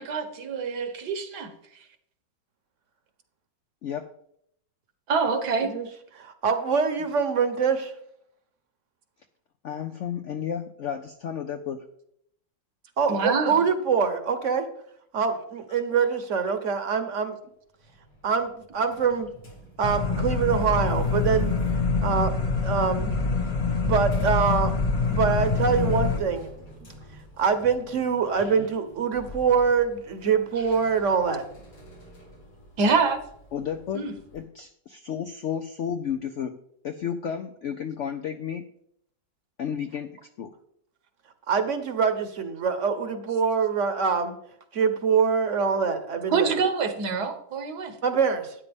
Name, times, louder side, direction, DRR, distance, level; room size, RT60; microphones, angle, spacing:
voice 1, 0.0-1.5 5.1-5.7 13.1-13.6 32.8-33.2 33.9-34.1 46.3-47.9, right 4 dB, 70° right, 7 dB, 1.6 m, -25 dB
voice 2, 6.2-7.9 13.0-14.7 15.1-17.4 18.2-19.3 19.8-21.5 22.0-22.3 22.6-23.1 23.8-24.7 25.0-26.5 27.4-31.5 41.5-44.3 44.7-46.5 48.0-48.5, right 6 dB, 50° right, 9 dB, 1.2 m, -24 dB
voice 3, 9.6-11.9 28.6-28.7 33.5-34.0 34.3-36.6 36.8-38.7 39.6-40.5, left 8 dB, 70° left, 7 dB, 0.7 m, -32 dB
sound 1, 17.8-34.4, equal, 85° left, 3.4 m, -47 dB
sound 2, 19.8-26.2, left 4 dB, 30° left, 0.7 m, -25 dB
12.0 x 9.7 x 3.5 m, 0.71 s
omnidirectional pair, 1.9 m